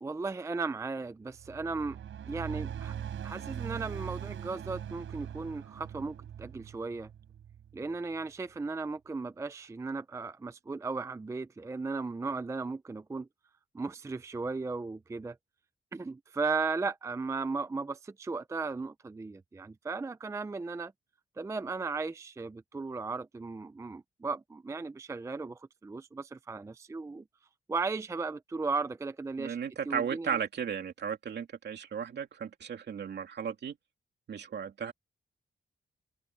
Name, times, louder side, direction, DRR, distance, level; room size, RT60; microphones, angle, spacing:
voice 1, 0.0-2.0 2.3-2.9 3.2-7.1 7.7-13.3 13.7-15.4 15.9-20.9 21.4-27.2 27.7-29.6 29.9-30.4, right 4 dB, 15° right, 0.4 m, -36 dB
sound 1, 1.4-7.9, right 9 dB, 85° right, 5.6 m, -41 dB
voice 2, 29.4-33.7 34.3-34.9, right 7 dB, 60° right, 2.7 m, -35 dB
open air
wide cardioid pair, 140°, 20 cm